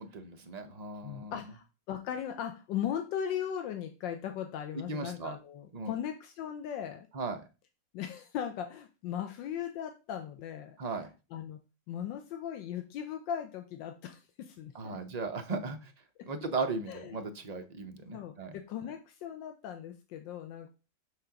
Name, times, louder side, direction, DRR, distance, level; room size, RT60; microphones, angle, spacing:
voice 1, 0.0-1.3 4.9-5.4 5.7-5.9 7.1-7.4 10.8-11.1 14.7-15.9 16.3-18.6, right 4 dB, 45° right, 6 dB, 0.5 m, -37 dB
voice 2, 1.0-7.1 7.9-11.6 11.9-15.0 16.9-17.3 18.1-20.7, left 9 dB, 85° left, 6 dB, 1.4 m, -38 dB
6.6 x 3.7 x 5.7 m, 0.31 s
omnidirectional pair, 1.9 m